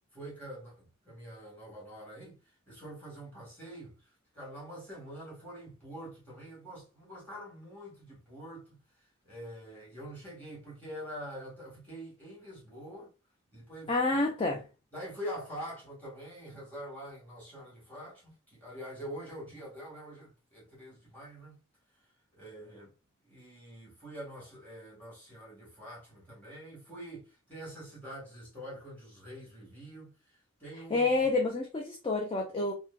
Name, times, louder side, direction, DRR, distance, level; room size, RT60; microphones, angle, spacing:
voice 1, 0.1-8.8 9.2-13.1 13.5-14.2 14.9-21.6 22.3-22.9 23.2-31.3, equal, 10° left, 1.3 m, -45 dB
voice 2, 13.9-14.6 30.9-32.7, left 3 dB, 25° left, 0.3 m, -28 dB
3.0 x 2.1 x 2.3 m
head